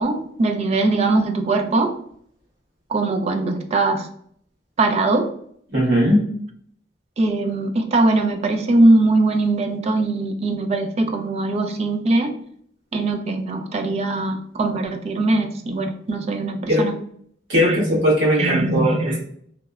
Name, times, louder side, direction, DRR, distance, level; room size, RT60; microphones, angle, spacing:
voice 1, 0.0-1.9 2.9-4.1 4.8-5.3 7.2-12.3 12.9-16.9 17.6-17.8 18.4-19.2, right 2 dB, 35° right, 6 dB, 0.3 m, -21 dB
voice 2, 5.7-6.2 16.7-16.8 17.5-19.2, equal, 90° right, -6 dB, 1.3 m, -19 dB
2.8 x 2.0 x 2.3 m, 0.63 s
head